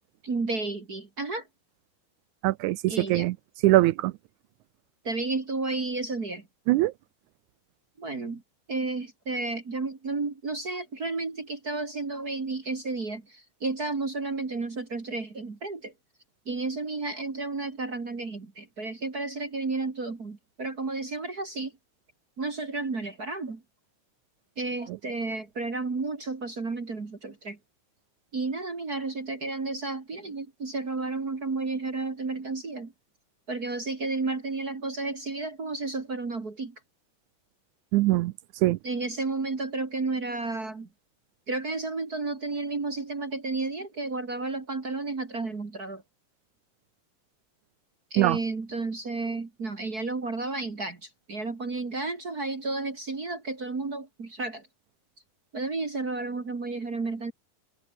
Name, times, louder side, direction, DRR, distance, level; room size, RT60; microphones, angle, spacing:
voice 1, 0.2-1.4 2.9-3.3 5.0-6.4 8.0-8.4 8.7-15.9 16.5-21.7 22.4-23.6 24.6-27.6 28.3-32.9 33.5-36.7 38.8-40.9 41.5-46.0 48.1-54.7 55.5-57.3, right 3 dB, 30° right, 2.5 m, -32 dB
voice 2, 2.4-3.4 3.6-4.1 6.7-6.9 37.9-38.3 38.6-38.8 48.2-48.4, right 17 dB, 80° right, 1.9 m, -22 dB
omnidirectional pair, 3.7 m